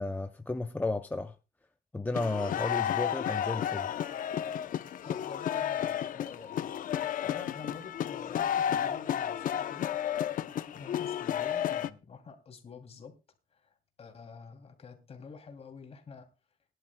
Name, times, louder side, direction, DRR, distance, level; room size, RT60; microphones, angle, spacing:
voice 1, 0.0-1.3 1.9-3.9, left 2 dB, 10° left, 0.6 m, -33 dB
sound 1, 2.1-11.9, left 10 dB, 55° left, 0.7 m, -32 dB
voice 2, 5.0-9.9 10.7-13.1 13.5-16.3, left 5 dB, 40° left, 2.8 m, -48 dB
21.5 x 11.0 x 2.2 m
cardioid pair, 120°, 16 cm